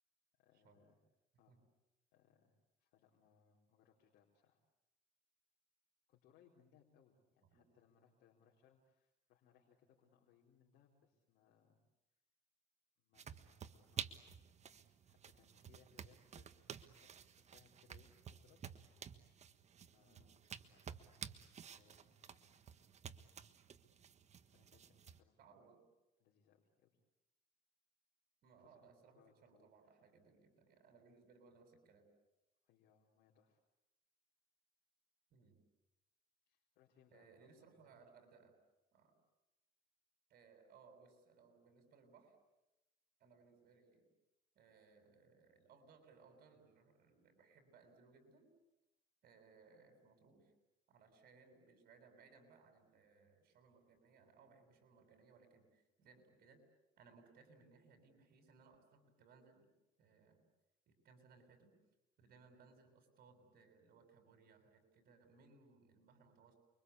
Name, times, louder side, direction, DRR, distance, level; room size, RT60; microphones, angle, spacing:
voice 1, 0.4-1.0 1.4-1.6 2.1-2.5 2.8-4.6 6.1-11.8 13.0-18.6 19.9-21.2 21.7-22.7 24.4-25.6 26.2-27.0 28.6-29.9 32.6-33.6 36.5-38.0, left 8 dB, 80° left, -2 dB, 4.2 m, -72 dB
sound 1, 13.1-25.2, right 7 dB, 40° right, 1.5 m, -52 dB
voice 2, 25.4-25.8 28.4-32.1 35.3-35.6 37.1-38.6 38.9-39.1 40.3-42.4 43.2-44.1 44.6-48.5 49.2-50.5 50.9-56.6 57.0-59.7 60.0-60.4 60.9-61.7 62.2-66.5, right 4 dB, 60° right, 6 dB, 7.3 m, -66 dB
29.5 x 24.0 x 8.4 m, 0.95 s
cardioid pair, 110°, 17 cm